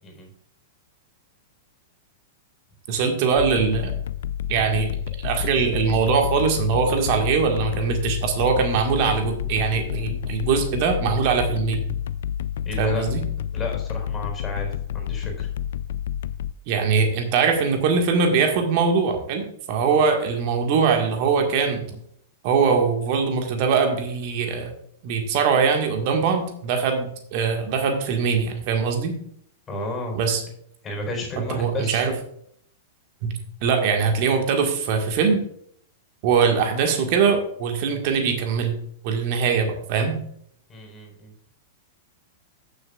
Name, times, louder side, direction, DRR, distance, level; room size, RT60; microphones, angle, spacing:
voice 1, 2.9-3.9 4.5-4.9 5.2-11.8 12.8-13.2 16.7-21.8 22.4-24.7 25.0-29.2 30.1-30.4 31.4-32.1 33.2-33.3 33.6-35.4 36.2-38.7 39.0-40.2, right 5 dB, 50° right, 4 dB, 1.7 m, -22 dB
sound 1, 3.4-16.5, left 10 dB, 60° left, 0.3 m, -29 dB
voice 2, 12.6-13.0 13.5-15.5 21.9-22.0 29.7-30.2 30.8-32.0 40.7-41.3, left 2 dB, 20° left, 1 dB, 4.1 m, -32 dB
14.5 x 6.8 x 2.4 m, 0.67 s
figure-of-eight pair, 100°, 0 cm